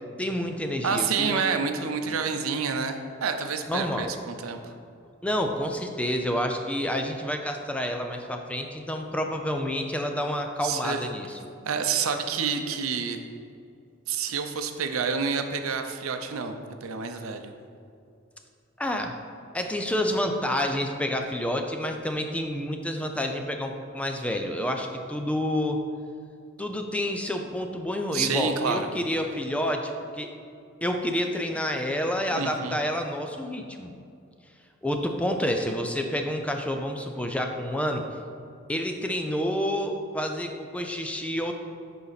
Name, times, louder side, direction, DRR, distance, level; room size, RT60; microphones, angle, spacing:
voice 1, 0.2-1.6 2.0-2.2 3.7-4.1 5.2-11.4 18.8-19.1 19.5-25.8 26.6-30.3 30.8-33.9 34.8-38.0 38.7-41.5, equal, 5° left, 4 dB, 0.5 m, -29 dB
voice 2, 0.8-4.6 10.6-11.0 11.7-13.2 14.1-17.5 28.1-28.9 32.3-32.8, right 5 dB, 90° right, 6 dB, 0.6 m, -28 dB
11.0 x 4.2 x 4.1 m, 2.4 s
head